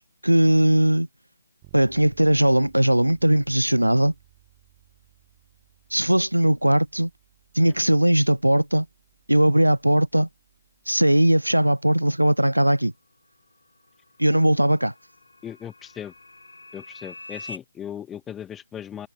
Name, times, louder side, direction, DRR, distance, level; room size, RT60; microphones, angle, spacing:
voice 1, 0.2-1.1 1.7-4.1 5.9-7.1 7.5-8.9 9.3-10.3 10.9-12.9 14.2-14.9, right 1 dB, 85° right, 0.3 m, -19 dB
Bass guitar, 1.6-11.4, right 31 dB, 20° right, 4.2 m, -58 dB
sound 1, 13.3-17.6, left 2 dB, 70° left, 2.3 m, -45 dB
voice 2, 15.4-16.1 16.7-19.1, left 9 dB, 10° left, 1.2 m, -37 dB
figure-of-eight pair, 150°, 0 cm